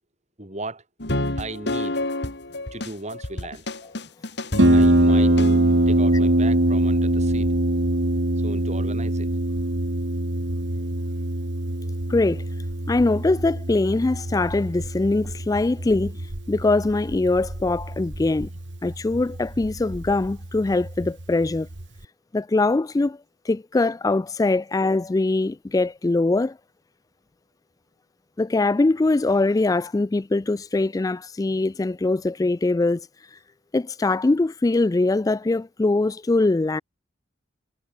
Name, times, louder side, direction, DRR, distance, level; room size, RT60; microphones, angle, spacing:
voice 1, 0.4-0.8 1.4-2.0 2.7-3.7 4.7-5.3 5.9-7.5 8.4-9.3, right 2 dB, 35° right, 5.6 m, -36 dB
sound 1, 1.0-5.9, left 1 dB, 60° left, 3.1 m, -29 dB
Harp, 4.6-22.0, right 1 dB, 70° right, 2.1 m, -23 dB
voice 2, 12.1-12.4 12.9-18.5 18.8-21.7 22.3-23.2 23.4-26.6 28.4-33.0 33.3-33.4 33.7-36.8, left 2 dB, 20° left, 0.3 m, -22 dB
head